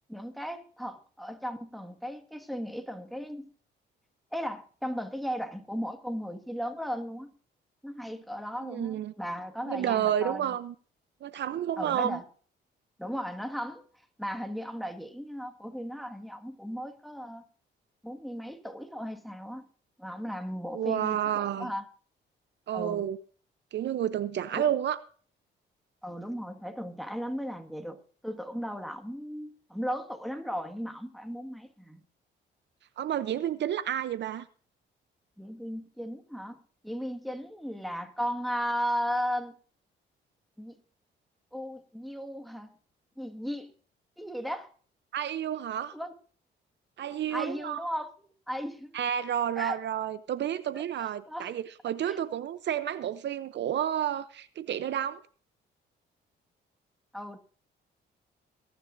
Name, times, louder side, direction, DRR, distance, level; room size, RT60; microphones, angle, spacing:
voice 1, 0.1-3.5 4.3-7.3 7.8-10.6 11.8-12.2 13.0-13.8 14.2-17.4 18.0-19.7 20.0-21.8 22.7-23.0 24.6-24.7 26.0-32.0 35.4-36.6 36.8-39.6 40.6-40.8 41.5-42.7 43.2-43.7 44.2-44.7 45.9-46.1 47.3-49.0 49.6-49.8 51.0-51.5 52.0-52.2 57.1-57.4, equal, ahead, 1.8 m, -36 dB
voice 2, 8.6-9.1 9.7-10.7 11.2-12.2 20.7-21.7 22.7-23.2 23.7-25.0 33.0-34.5 45.1-45.9 47.0-47.8 48.9-55.2, right 10 dB, 65° right, 0.7 m, -30 dB
22.5 x 10.5 x 2.6 m
cardioid pair, 90°, 20 cm